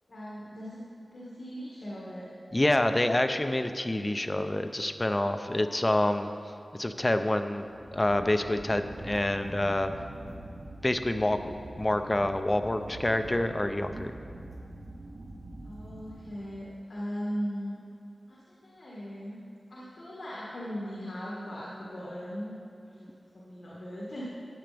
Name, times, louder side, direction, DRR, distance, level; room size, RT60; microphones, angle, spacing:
voice 1, 0.1-0.8 1.1-2.3 15.6-17.8 18.3-19.4 19.7-22.5 22.8-24.2, equal, 75° left, -7 dB, 1.9 m, -38 dB
voice 2, 2.5-6.3 6.8-7.6 7.9-9.9 10.8-14.1, left 1 dB, 25° left, 8 dB, 0.6 m, -27 dB
sound 1, 7.6-16.7, right 1 dB, 65° right, 1.0 m, -44 dB
15.5 x 8.8 x 3.5 m, 2.6 s
wide cardioid pair, 65°, 0 cm